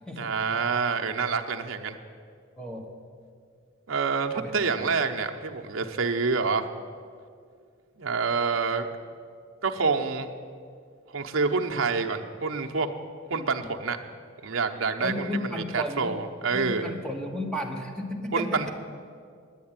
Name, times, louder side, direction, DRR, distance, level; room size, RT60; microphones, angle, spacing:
voice 1, 0.2-2.0 3.9-6.7 8.0-8.9 9.6-10.3 11.1-12.9 13.3-14.0 14.4-16.9 18.3-18.7, right 4 dB, 70° right, 3 dB, 0.8 m, -27 dB
voice 2, 2.6-2.9 4.3-4.9 15.0-16.2 16.5-18.7, left 1 dB, 5° left, 2 dB, 1.2 m, -34 dB
10.0 x 9.2 x 8.9 m, 2.2 s
head